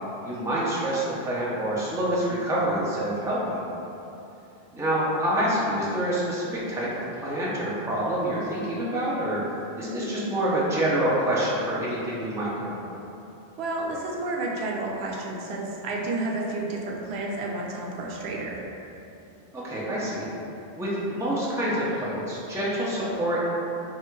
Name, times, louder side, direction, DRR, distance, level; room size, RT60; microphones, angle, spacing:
voice 1, 0.2-3.6 4.7-9.4 9.8-12.8 19.5-20.3 20.7-23.5, right 1 dB, 5° right, -7 dB, 0.5 m, -27 dB
voice 2, 13.6-18.6, right 2 dB, 85° right, -2 dB, 0.9 m, -31 dB
3.4 x 2.4 x 4.5 m, 2.9 s
omnidirectional pair, 1.0 m